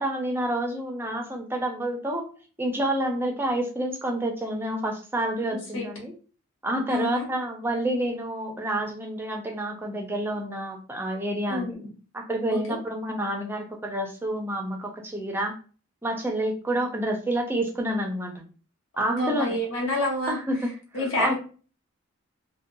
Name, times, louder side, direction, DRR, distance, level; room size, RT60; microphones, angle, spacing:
voice 1, 0.0-2.3 2.6-6.1 6.6-11.8 12.1-15.5 16.0-18.5 19.0-19.6 20.3-20.6 20.9-21.3, right 1 dB, 10° right, 2 dB, 0.4 m, -28 dB
voice 2, 5.5-5.9 6.9-7.3 11.5-11.8 12.5-12.8 19.0-20.4 20.9-21.3, left 1 dB, 65° left, -2 dB, 1.1 m, -28 dB
2.6 x 2.2 x 2.6 m, 0.38 s
head